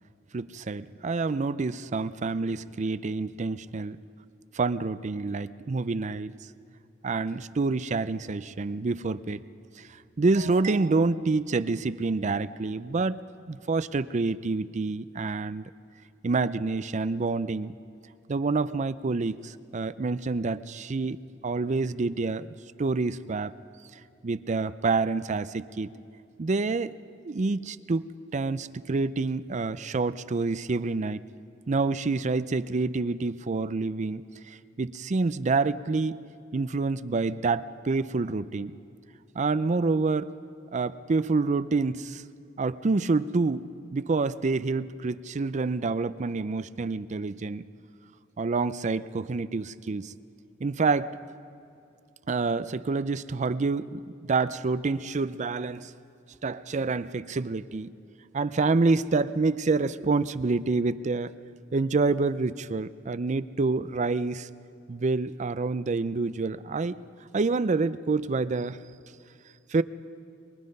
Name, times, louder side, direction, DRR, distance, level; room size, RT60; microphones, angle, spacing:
voice 1, 0.3-4.0 4.5-6.4 7.0-9.4 9.8-9.9 10.2-13.2 13.5-15.7 16.2-17.7 18.3-23.5 24.2-25.9 26.4-26.9 27.2-28.1 28.3-31.2 31.7-36.2 36.5-38.7 39.3-40.3 40.7-42.2 42.6-43.7 43.9-47.6 48.4-50.1 50.6-51.2 52.3-55.9 56.4-57.9 58.3-61.3 61.7-64.5 64.9-67.0 67.3-68.8 69.7-69.8, right 3 dB, 40° right, 14 dB, 0.5 m, -27 dB
23.5 x 23.0 x 5.4 m, 2.5 s
head